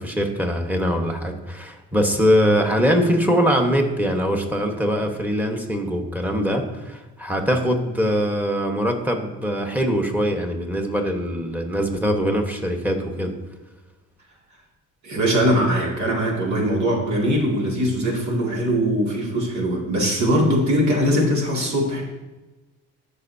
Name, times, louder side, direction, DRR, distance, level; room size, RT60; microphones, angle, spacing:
voice 1, 0.0-13.3, equal, 5° right, 3 dB, 1.3 m, -22 dB
voice 2, 15.0-22.0, equal, 70° right, -2 dB, 2.5 m, -21 dB
13.5 x 5.5 x 2.8 m, 1.1 s
cardioid pair, 90°, 30 cm